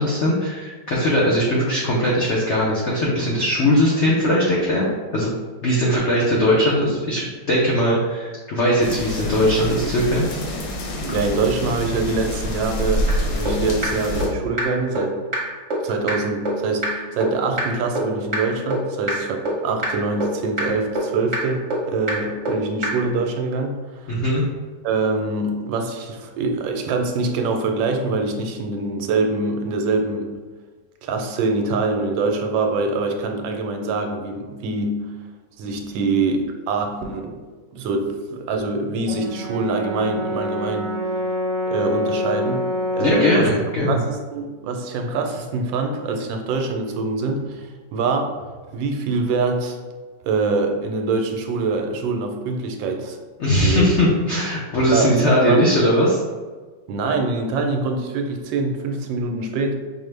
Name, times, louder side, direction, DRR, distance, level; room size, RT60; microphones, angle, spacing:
voice 1, 0.0-5.3 5.6-10.2 24.1-24.4 43.0-44.0 53.4-56.2, equal, 90° left, -4 dB, 0.6 m, -19 dB
sound 1, 8.8-14.3, left 1 dB, 65° left, 0.9 m, -27 dB
voice 2, 11.0-15.2 15.8-24.2 24.8-30.3 31.0-34.9 35.6-37.4 37.7-40.9 41.7-43.5 43.9-48.3 48.7-49.8 50.2-53.2 53.6-54.1 54.9-55.6 56.9-59.8, right 3 dB, 85° right, 4 dB, 1.3 m, -24 dB
sound 2, 13.1-13.2 13.5-13.6 13.8-13.9 14.2-14.3 14.6-14.7 15.0-15.1 15.3-15.4 15.7-15.8 16.1-16.2 16.5-16.6 16.8-16.9 17.2-17.3 17.6-17.7 18.0-18.1 18.3-18.4 18.7-18.8 19.1-19.2 19.5-19.6 19.8-19.9 20.2-20.3 20.6-20.7 21.0-21.1 21.3-21.4 21.7-21.8 22.1-22.2 22.5-22.6 22.8-22.9, right 2 dB, 45° right, 1.1 m, -23 dB
Brass instrument, 39.1-43.4, left 1 dB, 65° right, 1.2 m, -26 dB
5.2 x 2.1 x 3.2 m, 1.4 s
omnidirectional pair, 2.0 m